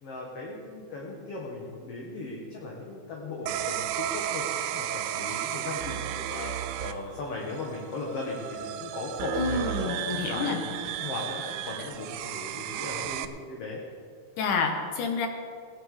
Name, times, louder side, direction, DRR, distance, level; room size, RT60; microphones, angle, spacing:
voice 1, 0.0-13.8, left 3 dB, 55° left, -2 dB, 2.2 m, -37 dB
sound 1, 3.5-13.3, right 11 dB, 80° right, 1.9 m, -33 dB
voice 2, 9.4-10.6 14.4-15.3, left 4 dB, 70° left, 4 dB, 2.6 m, -28 dB
18.0 x 9.7 x 5.0 m, 2.1 s
omnidirectional pair, 3.8 m